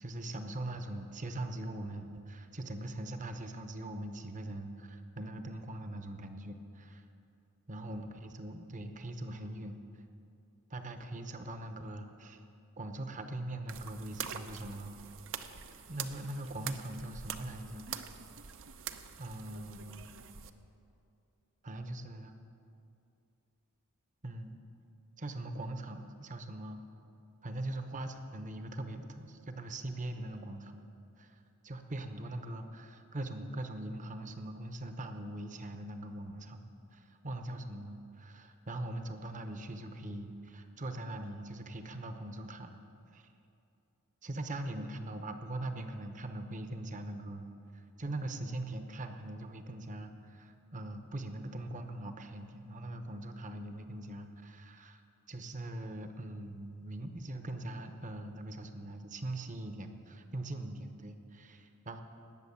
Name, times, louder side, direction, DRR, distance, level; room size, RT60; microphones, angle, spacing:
voice 1, 0.0-7.0 7.7-9.8 10.7-12.4 12.8-15.0 15.9-17.9 19.2-20.1 21.6-22.4 24.2-24.6 25.2-26.8 27.4-30.9 31.2-36.6 36.9-42.8 43.1-43.3 44.2-47.5 47.7-55.0 55.3-62.0, right 1 dB, 35° right, 7 dB, 0.9 m, -41 dB
sound 1, 13.7-20.5, right 8 dB, 60° right, 0.7 m, -44 dB
19.5 x 6.6 x 8.6 m, 2.7 s
head